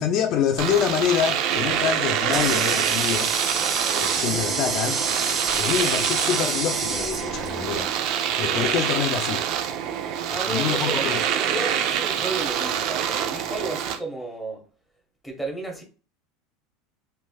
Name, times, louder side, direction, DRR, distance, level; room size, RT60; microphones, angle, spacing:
voice 1, 0.0-3.3 4.0-5.0 5.6-7.9 8.4-9.4 10.5-11.2, left 8 dB, 50° left, 0.4 m, -26 dB
Domestic sounds home sounds, 0.6-14.0, right 9 dB, 60° right, 0.5 m, -26 dB
Water tap faucet, 1.6-8.1, right 4 dB, 40° right, 1.1 m, -28 dB
voice 2, 10.3-14.6 15.2-15.8, right 2 dB, 5° left, 1.0 m, -33 dB
3.1 x 2.5 x 2.3 m
supercardioid pair, 115°, 0 cm